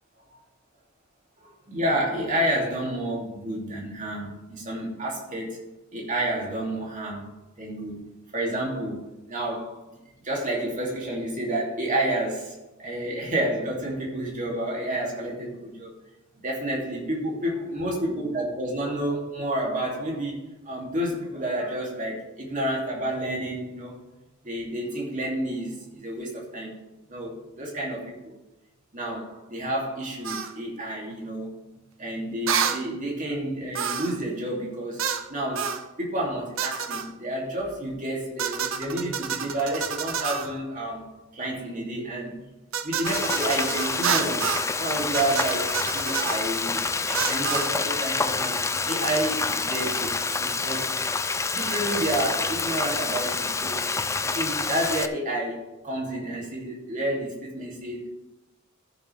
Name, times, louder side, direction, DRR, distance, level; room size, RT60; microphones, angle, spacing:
voice 1, 1.4-5.6 5.9-7.3 7.6-8.0 8.3-10.0 10.2-15.9 16.4-23.9 24.4-26.8 27.1-28.3 28.9-31.5 32.0-35.0 35.3-41.1 41.3-42.4 42.8-48.6 48.9-51.0 51.5-53.8 54.3-58.1, right 1 dB, 40° right, -3 dB, 2.9 m, -30 dB
sound 1, 30.2-30.5 32.5-32.8 33.7-34.2 35.0-35.3 35.6-35.8 36.6-37.1 38.4-40.5 42.7-44.7 45.1-46.4 47.1-47.7, right 7 dB, 75° right, 0.7 m, -29 dB
Frying (food), 43.1-55.1, left 4 dB, 15° left, 0.4 m, -27 dB
14.5 x 7.1 x 3.5 m, 1.0 s
head